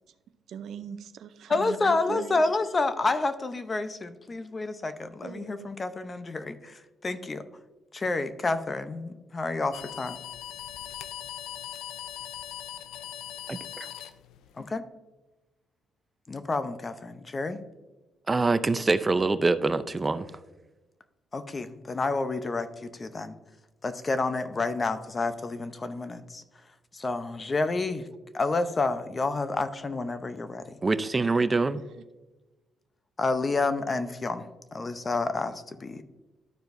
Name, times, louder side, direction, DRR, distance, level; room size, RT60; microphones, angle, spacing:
voice 1, 0.5-2.4 5.2-5.7, right 8 dB, 70° right, 10 dB, 0.5 m, -39 dB
voice 2, 1.5-7.4 7.9-10.2 14.6-14.9 16.3-17.6 21.3-22.7 22.9-23.3 23.8-26.4 26.9-28.1 28.3-30.8 33.2-34.4 34.7-36.0, left 3 dB, 30° left, 11 dB, 0.6 m, -29 dB
sound 1, 9.7-14.7, left 11 dB, 85° left, 0.4 m, -40 dB
voice 3, 13.5-13.9 18.3-20.3 30.8-31.8, right 3 dB, 25° right, 12 dB, 0.4 m, -25 dB
12.5 x 4.7 x 2.6 m, 1.1 s
cardioid pair, 90°, 0 cm